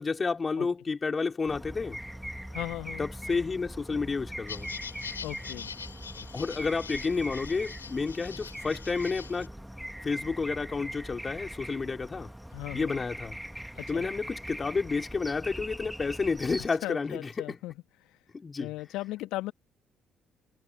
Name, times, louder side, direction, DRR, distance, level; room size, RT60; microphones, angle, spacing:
voice 1, 0.0-2.0 3.0-4.7 6.3-9.5 10.0-12.3 12.7-13.4 13.9-17.6 18.3-18.7, left 4 dB, 30° left, 4.5 m, -30 dB
sound 1, 1.5-16.7, equal, 5° right, 2.2 m, -41 dB
voice 2, 2.5-3.1 5.2-5.7 12.5-13.0 13.7-14.1 16.8-17.7 18.0-18.1 18.6-19.5, left 18 dB, 65° left, 1.5 m, -37 dB
sound 2, 4.5-9.5, left 6 dB, 90° left, 3.8 m, -43 dB
figure-of-eight pair, 45°, 0 cm